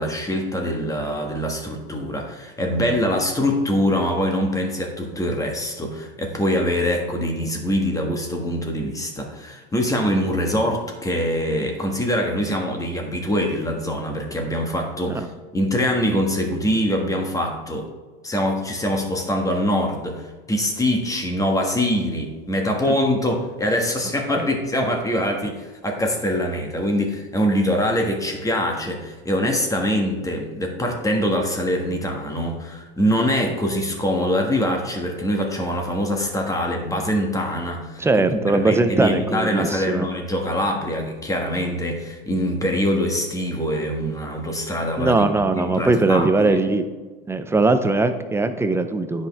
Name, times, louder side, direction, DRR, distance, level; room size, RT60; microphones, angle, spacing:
voice 1, 0.0-15.3 15.5-17.9 18.2-38.2 38.5-46.6, equal, 10° left, 2 dB, 1.4 m, -24 dB
voice 2, 38.0-40.1 45.0-46.8 47.3-49.3, right 3 dB, 10° right, 9 dB, 0.5 m, -20 dB
9.8 x 5.3 x 3.5 m, 1.3 s
hypercardioid pair, 105°, 31 cm